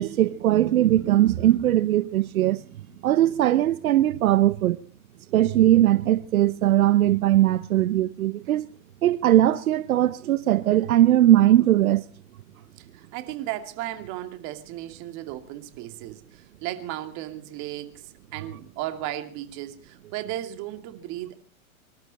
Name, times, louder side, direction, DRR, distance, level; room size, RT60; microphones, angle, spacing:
voice 1, 0.0-2.6 3.0-4.8 5.3-8.7 9.0-12.0, right 13 dB, 80° right, 0.9 m, -20 dB
voice 2, 12.8-21.4, right 14 dB, 40° right, 2.5 m, -35 dB
25.0 x 12.5 x 4.2 m
hypercardioid pair, 125°, 42 cm